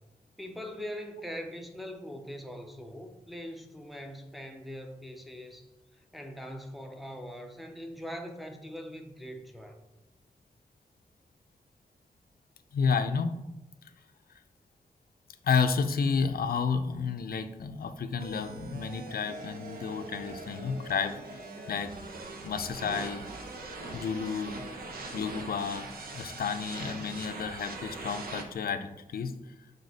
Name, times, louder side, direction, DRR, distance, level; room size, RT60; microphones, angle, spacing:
voice 1, 0.4-5.7 5.9-9.8, equal, ahead, 4 dB, 0.7 m, -42 dB
voice 2, 12.7-13.4 15.4-21.4 21.7-21.9 22.4-23.2 23.9-24.6 25.1-25.9 26.1-29.3, left 5 dB, 80° left, 9 dB, 0.5 m, -31 dB
sound 1, 18.2-28.4, right 3 dB, 80° right, 0.9 m, -42 dB
6.6 x 4.1 x 4.1 m, 1.0 s
wide cardioid pair, 170°, 15 cm